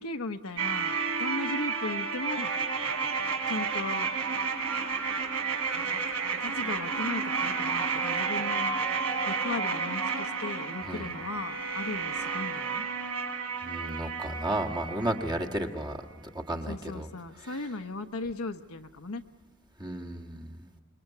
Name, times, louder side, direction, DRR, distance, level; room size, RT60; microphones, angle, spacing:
voice 1, 0.0-2.5 3.5-4.1 5.7-6.1 6.3-8.8 9.2-12.9 16.7-19.2, left 3 dB, 65° left, 8 dB, 1.1 m, -37 dB
sound 1, 0.6-15.6 15.9-16.0, right 5 dB, 85° right, 3.6 m, -31 dB
voice 2, 13.6-16.0 16.2-17.1 19.8-20.6, right 1 dB, 20° right, 2 dB, 1.7 m, -33 dB
27.0 x 22.0 x 8.3 m, 1.2 s
head